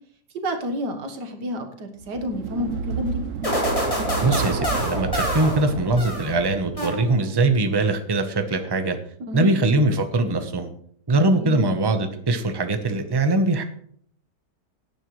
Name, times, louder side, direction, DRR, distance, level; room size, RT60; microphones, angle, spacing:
voice 1, 0.3-3.2 9.3-9.5 11.4-11.8, left 1 dB, 75° right, 5 dB, 2.0 m, -30 dB
sound 1, 2.0-6.9, right 6 dB, 55° right, 1.0 m, -31 dB
sound 2, 3.4-6.4 6.8-7.4, equal, 20° left, 2.9 m, -27 dB
voice 2, 4.2-9.0 9.3-10.7 11.1-13.6, right 2 dB, 20° right, 6 dB, 0.8 m, -22 dB
17.0 x 9.8 x 3.2 m, 0.63 s
omnidirectional pair, 1.8 m